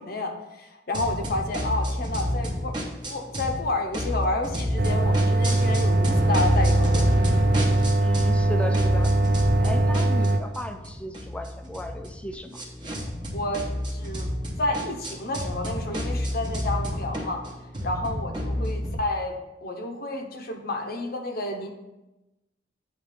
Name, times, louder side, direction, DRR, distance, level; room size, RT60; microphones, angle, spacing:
voice 1, 0.0-7.1 13.3-14.3 14.6-17.4 17.8-21.7, left 2 dB, 55° left, 4 dB, 0.9 m, -30 dB
sound 1, 0.9-3.6 3.9-8.5 8.7-18.9, equal, 25° right, 1.0 m, -29 dB
sound 2, 4.8-10.4, right 2 dB, 60° right, 0.6 m, -21 dB
voice 2, 8.0-9.1 9.6-12.6 18.6-18.8, left 1 dB, 5° left, 6 dB, 0.5 m, -35 dB
8.2 x 3.1 x 5.1 m, 1.0 s
head